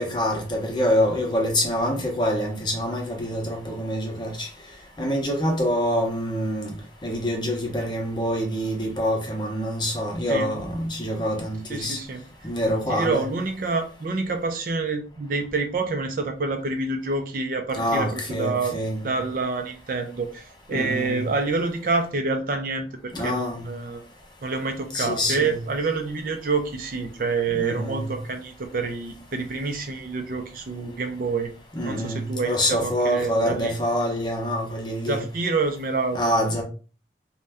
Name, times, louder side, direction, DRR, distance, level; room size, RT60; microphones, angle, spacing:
voice 1, 0.0-4.5 5.0-6.7 7.0-12.0 12.4-13.2 17.8-19.1 20.7-21.3 23.1-23.6 24.9-25.6 27.5-28.2 31.7-35.2 36.1-36.6, equal, 25° left, 0.7 m, -26 dB
voice 2, 11.7-12.2 12.9-18.8 19.0-24.0 24.4-31.5 31.8-33.7 35.1-36.2, right 3 dB, 50° right, 0.4 m, -27 dB
2.6 x 2.1 x 3.4 m
head